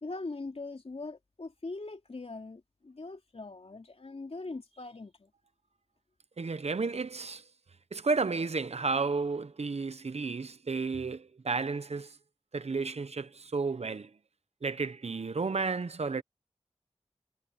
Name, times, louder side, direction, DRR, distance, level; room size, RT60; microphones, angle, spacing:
voice 1, 0.0-5.3, left 3 dB, 60° left, 3.1 m, -41 dB
voice 2, 6.4-7.4 7.9-12.1 12.5-14.1 14.6-16.2, right 4 dB, 70° right, 0.9 m, -32 dB
wide cardioid pair, 65°, 11 cm